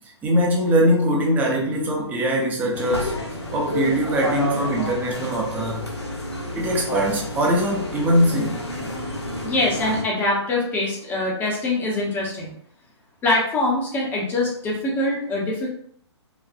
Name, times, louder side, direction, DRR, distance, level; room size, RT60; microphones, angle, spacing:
voice 1, 0.2-3.2 3.5-5.9 6.5-8.6, equal, 10° right, -1 dB, 0.8 m, -22 dB
sound 1, 2.7-10.0, left 1 dB, 65° left, 1.1 m, -30 dB
voice 2, 9.4-12.5 13.2-15.7, left 2 dB, 15° left, -2 dB, 1.0 m, -23 dB
4.9 x 2.5 x 2.6 m, 0.63 s
figure-of-eight pair, 125°, 15 cm